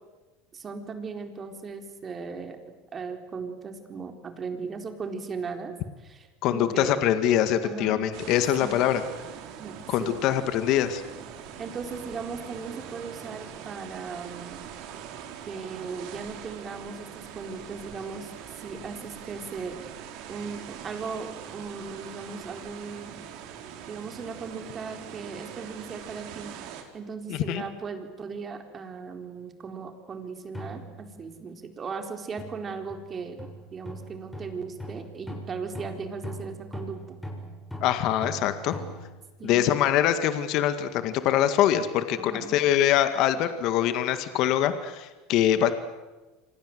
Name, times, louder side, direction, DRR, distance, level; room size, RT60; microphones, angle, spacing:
voice 1, 0.5-2.6 2.9-7.0 7.6-8.0 8.6-8.8 9.6-10.2 11.1-11.2 11.6-14.6 15.5-18.3 18.6-19.8 20.3-23.1 23.9-26.6 26.9-37.2 39.4-39.7 42.2-42.6, right 5 dB, 30° right, 5 dB, 4.1 m, -37 dB
voice 2, 6.4-9.0 9.9-11.0 27.3-27.6 37.8-38.7 39.4-45.7, left 11 dB, 55° left, 10 dB, 1.9 m, -24 dB
sound 1, 8.1-26.8, right 9 dB, 65° right, 4.3 m, -42 dB
sound 2, 30.5-31.5 32.4-39.1, equal, 5° left, 7.3 m, -41 dB
28.5 x 25.5 x 7.9 m, 1.2 s
supercardioid pair, 120°, 0 cm